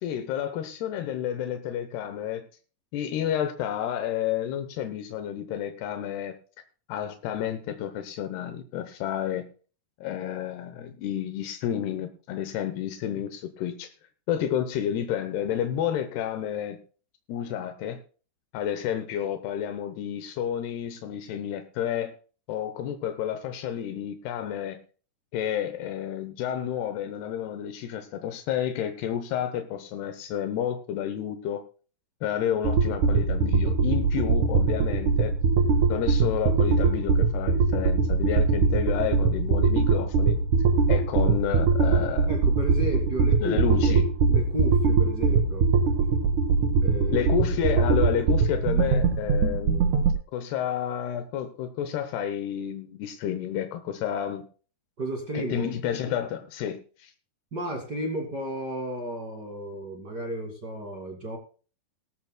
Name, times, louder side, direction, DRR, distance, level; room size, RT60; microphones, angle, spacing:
voice 1, 0.0-2.5 2.9-6.4 6.9-9.5 10.0-13.9 14.3-16.8 17.3-18.0 18.5-22.1 22.5-24.8 25.3-31.6 32.2-35.3 35.9-40.4 40.9-42.3 43.4-44.1 47.1-49.9 50.3-54.5 55.3-57.1, left 10 dB, 85° left, 8 dB, 3.0 m, -30 dB
sound 1, 32.6-50.1, right 4 dB, 60° right, 2.8 m, -22 dB
voice 2, 42.3-45.7 46.8-47.3 55.0-55.7 57.5-61.4, right 1 dB, 35° right, 1 dB, 2.1 m, -33 dB
18.5 x 13.5 x 2.2 m, 0.38 s
omnidirectional pair, 4.6 m